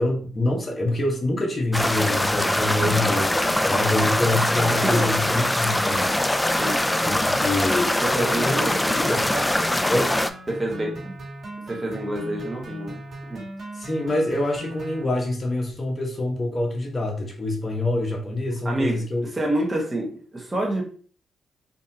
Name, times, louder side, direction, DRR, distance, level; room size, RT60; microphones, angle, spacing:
voice 1, 0.0-6.3 7.0-8.5 9.0-9.3 9.9-10.1 13.7-19.2, left 2 dB, 40° left, 1 dB, 1.2 m, -26 dB
sound 1, 1.7-10.3, left 1 dB, 10° left, 0.3 m, -23 dB
sound 2, 3.5-15.0, right 1 dB, 65° right, 1.6 m, -38 dB
voice 2, 8.0-9.4 9.7-9.9 10.5-11.2 11.7-13.0 13.3-13.4 18.6-20.8, right 1 dB, 25° right, -1 dB, 1.0 m, -28 dB
3.9 x 2.6 x 2.8 m, 0.42 s
cardioid pair, 65°, 0 cm